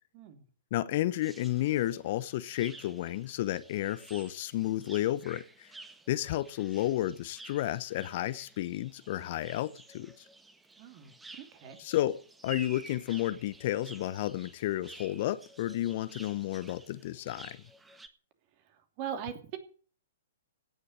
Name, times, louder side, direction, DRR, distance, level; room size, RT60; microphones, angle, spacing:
voice 1, 0.7-5.7 6.1-10.1 11.8-17.6, left 14 dB, 45° left, 0.9 m, -32 dB
sound 1, 1.2-18.1, right 2 dB, 10° right, 1.5 m, -52 dB
voice 2, 10.8-11.8 18.7-19.6, right 9 dB, 40° right, 2.9 m, -41 dB
17.0 x 6.8 x 8.5 m
figure-of-eight pair, 115°, 0 cm